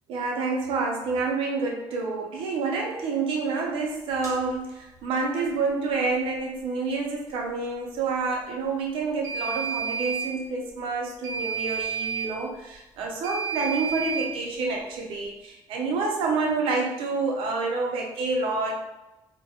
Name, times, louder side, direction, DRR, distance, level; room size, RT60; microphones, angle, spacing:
voice 1, 0.1-18.8, right 4 dB, 80° right, 0 dB, 0.6 m, -28 dB
sound 1, 4.2-4.4 9.2-10.3 11.2-12.3 13.2-14.3, right 7 dB, 35° right, 0.6 m, -30 dB
2.3 x 2.2 x 2.8 m, 0.97 s
cardioid pair, 115°, 9 cm